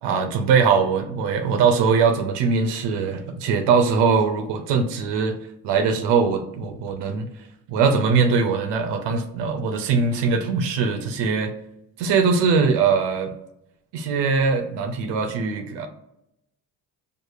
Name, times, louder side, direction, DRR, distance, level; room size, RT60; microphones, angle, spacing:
voice 1, 0.0-5.4 5.6-7.3 7.7-11.5 12.0-13.3 13.9-15.9, right 5 dB, 85° right, 5 dB, 0.6 m, -21 dB
4.6 x 2.5 x 2.4 m, 0.81 s
cardioid pair, 90°, 41 cm